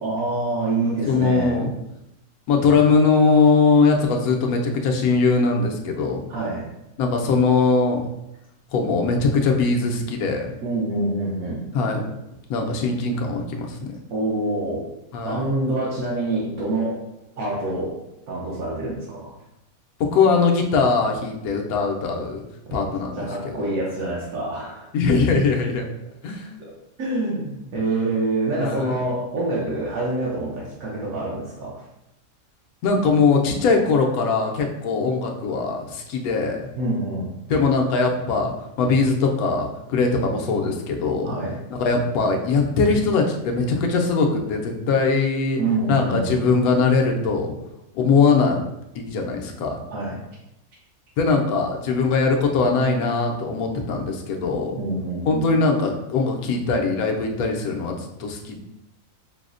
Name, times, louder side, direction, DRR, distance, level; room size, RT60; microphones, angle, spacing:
voice 1, 0.0-1.6 6.3-6.7 10.6-11.6 14.1-14.8 15.2-17.0 17.4-18.0 18.3-19.3 22.7-22.8 23.2-24.9 27.0-31.8 36.8-37.4 41.2-41.6 45.6-46.4 49.9-50.2 54.8-55.5, right 2 dB, 80° right, -5 dB, 1.2 m, -26 dB
voice 2, 1.1-1.7 2.5-6.2 7.0-8.0 8.7-10.5 11.7-12.1 12.5-13.9 15.1-15.5 20.1-22.4 22.7-23.2 23.4-23.6 24.9-25.8 26.2-26.5 28.6-29.0 32.8-36.7 37.5-38.5 38.8-41.4 41.7-45.6 45.9-47.5 47.9-48.6 48.9-49.8 51.2-54.8 55.2-58.6, left 4 dB, 85° left, 2 dB, 1.1 m, -21 dB
5.6 x 2.0 x 2.5 m, 0.87 s
omnidirectional pair, 1.5 m